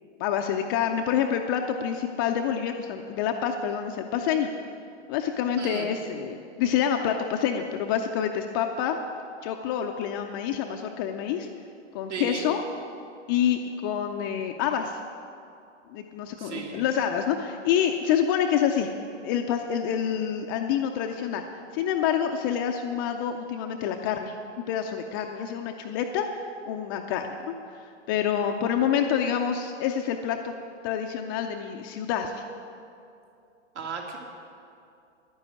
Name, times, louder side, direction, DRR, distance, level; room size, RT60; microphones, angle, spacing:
voice 1, 0.2-4.5 5.1-9.0 9.4-11.5 11.9-12.6 13.3-15.0 15.9-18.9 19.2-21.4 21.7-24.4 24.7-26.3 26.7-27.5 28.1-30.5 30.8-32.4, left 8 dB, 20° left, 4 dB, 0.3 m, -27 dB
voice 2, 12.1-12.5 16.4-16.8 33.7-34.2, right 5 dB, 70° right, 0 dB, 2.8 m, -35 dB
11.0 x 9.9 x 8.3 m, 2.5 s
hypercardioid pair, 120°, 37 cm